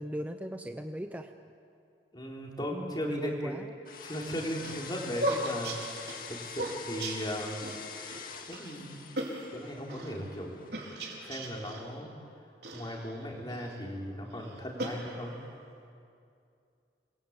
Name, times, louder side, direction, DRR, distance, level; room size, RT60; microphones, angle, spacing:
voice 1, 0.0-1.3 2.6-3.7, equal, 10° right, 6 dB, 0.7 m, -38 dB
voice 2, 2.1-3.5 4.0-7.7 8.5-9.0 9.5-10.7 11.2-12.1 12.7-15.4, equal, 25° left, -1 dB, 3.9 m, -37 dB
sound 1, 3.8-12.0, left 6 dB, 50° left, 2.1 m, -46 dB
sound 2, 4.2-7.8 8.1-8.2 8.5-8.7 9.2-10.1 10.7-11.9 12.6-13.7 14.3-15.5, right 1 dB, 70° right, 4.5 m, -37 dB
28.0 x 22.0 x 8.9 m, 2.5 s
head